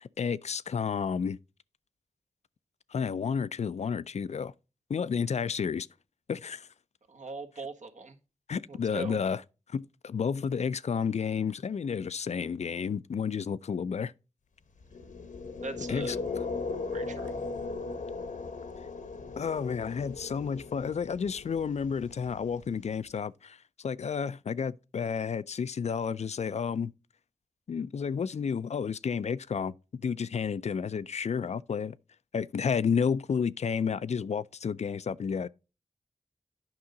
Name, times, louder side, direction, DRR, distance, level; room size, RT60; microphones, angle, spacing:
voice 1, 0.0-1.4 2.9-4.5 4.9-5.9 6.3-6.7 8.5-9.4 9.7-14.1 15.9-16.2 19.4-26.9 27.7-32.0 32.3-35.5, left 6 dB, 60° left, 0.4 m, -31 dB
voice 2, 7.1-8.2 8.7-9.2 15.6-16.2 16.9-17.3, right 3 dB, 70° right, 1.4 m, -40 dB
sound 1, 14.8-22.9, left 3 dB, 85° left, 1.1 m, -38 dB
8.8 x 5.5 x 3.8 m
cardioid pair, 45°, 13 cm